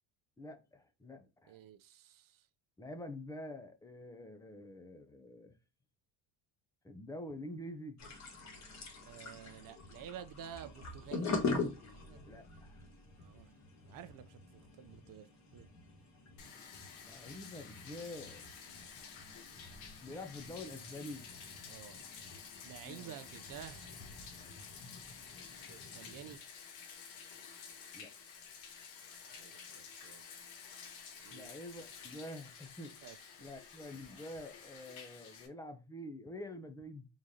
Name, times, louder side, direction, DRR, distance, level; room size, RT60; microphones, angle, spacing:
voice 1, 0.4-1.6 2.8-5.6 6.8-8.0 12.3-12.8 17.0-18.4 20.0-21.3 22.8-23.1 27.9-28.1 31.3-32.9 33.4-37.1, left 1 dB, 10° left, 0.3 m, -47 dB
voice 2, 1.5-2.5 9.0-11.4 11.9-12.2 13.2-13.5 13.9-15.7 21.7-22.0 22.6-24.1 25.7-26.4 29.2-30.2 31.2-31.5 33.0-33.5, right 10 dB, 50° right, 0.5 m, -51 dB
sound 1, 8.0-26.4, left 3 dB, 35° left, 1.2 m, -44 dB
Bathtub (filling or washing), 16.4-35.5, left 6 dB, 90° left, 1.1 m, -51 dB
3.7 x 3.1 x 2.6 m
cardioid pair, 125°, 46 cm